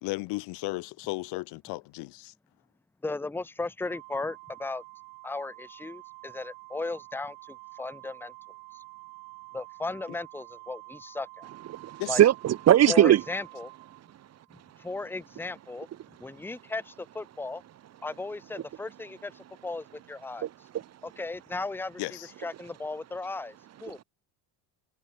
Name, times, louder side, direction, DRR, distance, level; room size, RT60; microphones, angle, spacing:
voice 1, 0.0-2.3 12.0-12.2 22.0-22.3, left 23 dB, 75° left, 2.2 m, -35 dB
voice 2, 3.0-4.8 5.2-8.3 8.7-8.8 9.5-11.5 12.1-12.2 12.9-13.7 14.8-15.9 16.2-17.6 18.0-20.5 21.0-22.0 22.4-23.5 23.8-24.0, left 3 dB, 5° left, 1.1 m, -36 dB
Organ, 3.8-14.6, right 30 dB, 90° right, 3.6 m, -49 dB
voice 3, 11.7-13.2 20.4-20.8 23.9-24.0, right 12 dB, 40° right, 1.2 m, -21 dB
cardioid pair, 150°, 42 cm